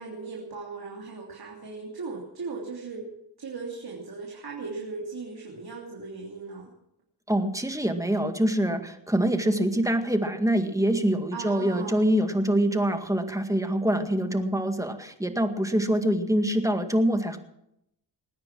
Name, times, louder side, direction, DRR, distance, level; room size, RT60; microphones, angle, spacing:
voice 1, 0.0-3.0 3.4-6.7 11.3-12.0, right 4 dB, 55° right, -2 dB, 3.1 m, -38 dB
voice 2, 7.3-17.4, right 1 dB, 5° right, 6 dB, 2.0 m, -25 dB
20.5 x 9.6 x 6.1 m, 0.79 s
cardioid pair, 65°, 44 cm